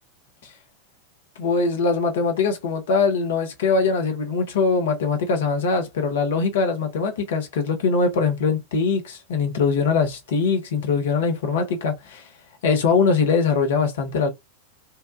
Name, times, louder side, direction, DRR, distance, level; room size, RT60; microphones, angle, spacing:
voice 1, 1.4-12.3 12.6-14.3, left 4 dB, 60° left, 0.8 m, -22 dB
2.7 x 2.1 x 2.3 m
figure-of-eight pair, 90°, 0 cm